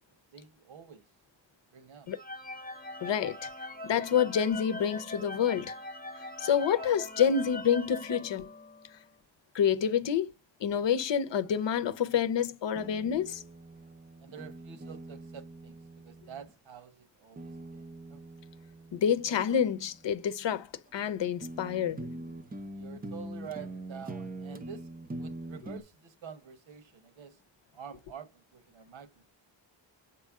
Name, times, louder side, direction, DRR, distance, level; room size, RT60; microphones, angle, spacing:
voice 1, 0.3-1.1 1.7-2.1 14.2-18.2 22.7-27.4 27.7-29.3, right 7 dB, 85° right, 1.3 m, -48 dB
sound 1, 2.1-9.1, left 2 dB, 20° left, 1.0 m, -42 dB
voice 2, 3.0-3.5 3.8-5.7 6.4-8.5 9.5-10.3 10.6-13.4 18.9-20.7 20.9-22.1, left 8 dB, 70° left, 0.8 m, -28 dB
sound 2, 12.8-16.5 17.4-20.1 20.9-21.0 21.4-25.8, right 1 dB, 20° right, 0.5 m, -43 dB
6.5 x 4.4 x 3.6 m
wide cardioid pair, 120°, 46 cm